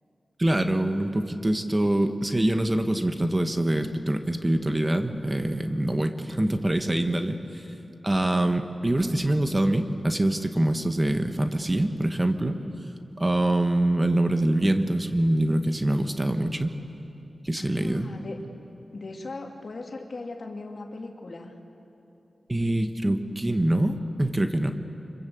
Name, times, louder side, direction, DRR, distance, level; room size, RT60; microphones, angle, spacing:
voice 1, 0.4-7.6 8.0-12.6 13.2-16.7 17.4-18.1 22.5-24.8, right 1 dB, 25° right, 7 dB, 1.6 m, -24 dB
voice 2, 17.6-18.4 18.9-21.5, left 3 dB, 60° left, 2 dB, 2.6 m, -38 dB
25.5 x 22.5 x 7.9 m, 2.8 s
cardioid pair, 50°, 0 cm